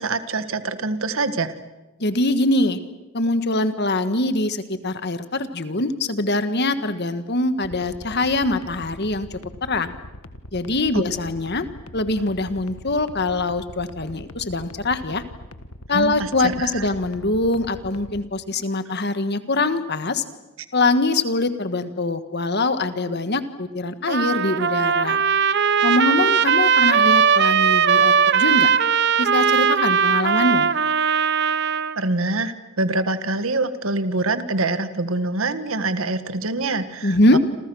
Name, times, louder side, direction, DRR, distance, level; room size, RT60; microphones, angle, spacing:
voice 1, 0.0-1.5 10.9-11.0 15.9-16.8 32.0-37.4, right 2 dB, 75° right, 11 dB, 1.6 m, -25 dB
voice 2, 2.0-2.8 3.1-9.9 10.5-11.7 11.9-15.2 15.9-20.2 20.7-25.2 25.8-28.7 29.2-30.7 37.0-37.4, left 2 dB, 50° left, 10 dB, 1.6 m, -23 dB
sound 1, 7.6-18.2, left 1 dB, 90° left, 1.5 m, -41 dB
Trumpet, 24.1-32.0, right 6 dB, 55° right, 0.9 m, -19 dB
28.5 x 27.5 x 6.4 m, 1.0 s
head